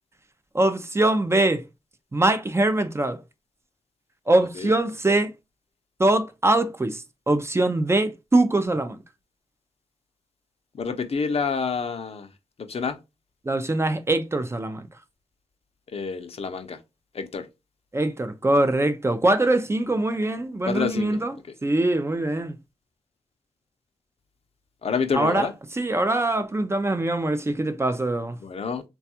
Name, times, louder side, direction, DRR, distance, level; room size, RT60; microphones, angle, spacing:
voice 1, 0.5-1.6 2.1-3.2 4.3-5.3 6.0-9.0 13.5-14.9 17.9-21.3 21.6-22.6 25.1-25.5 25.7-28.4, right 2 dB, 25° right, 0.4 m, -23 dB
voice 2, 10.7-12.3 12.6-13.0 15.9-16.8 17.1-17.5 20.6-21.2 24.8-25.5 28.4-28.8, left 5 dB, 70° left, 0.5 m, -28 dB
3.3 x 2.3 x 2.7 m
wide cardioid pair, 85°, 11 cm